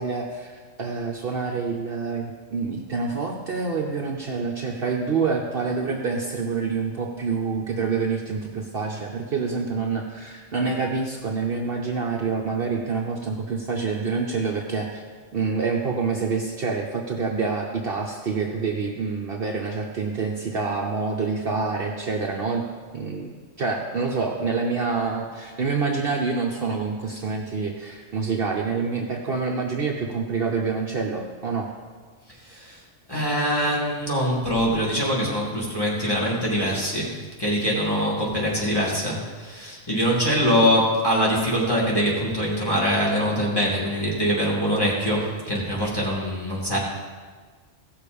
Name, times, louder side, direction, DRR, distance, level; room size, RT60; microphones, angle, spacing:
voice 1, 0.0-15.0 15.3-22.6 22.9-31.7, right 4 dB, 50° right, 1 dB, 1.0 m, -27 dB
voice 2, 33.1-37.1 37.4-46.8, equal, 20° left, -4 dB, 2.5 m, -23 dB
15.5 x 6.6 x 5.3 m, 1.5 s
omnidirectional pair, 1.3 m